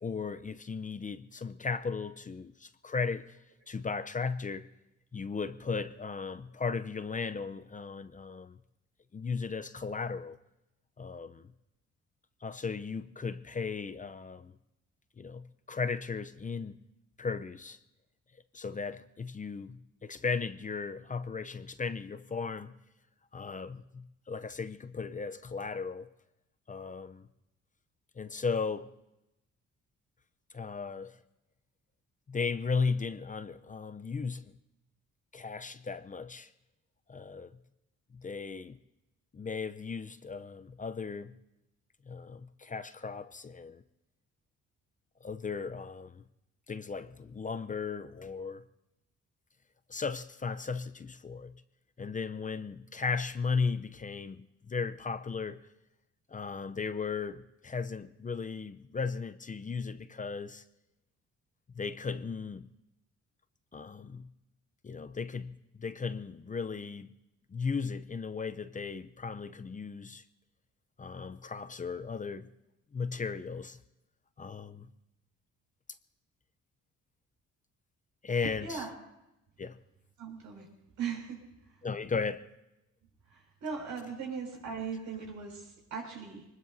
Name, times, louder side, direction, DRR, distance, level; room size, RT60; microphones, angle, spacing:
voice 1, 0.0-3.4 3.7-4.7 5.1-8.6 9.1-10.4 11.0-11.5 12.4-14.5 15.2-16.8 17.2-17.8 18.5-22.7 23.3-26.1 26.7-27.3 28.2-28.9 30.5-31.2 32.3-34.5 35.3-36.5 37.1-37.5 38.1-38.8 39.3-41.3 42.1-43.8 45.2-46.2 46.7-48.6 49.9-51.5 52.0-55.6 56.3-60.6 61.7-62.7 63.7-64.3 64.8-67.1 67.5-70.2 71.0-72.5 72.9-73.8 74.4-74.9 78.2-78.9 79.6-79.8 81.8-82.5, left 5 dB, 25° left, 0.6 m, -36 dB
voice 2, 78.4-78.9 80.2-80.7 81.0-81.8 83.3-86.5, right 6 dB, 80° right, 6.2 m, -39 dB
24.5 x 20.5 x 2.7 m
cardioid pair, 90°, 30 cm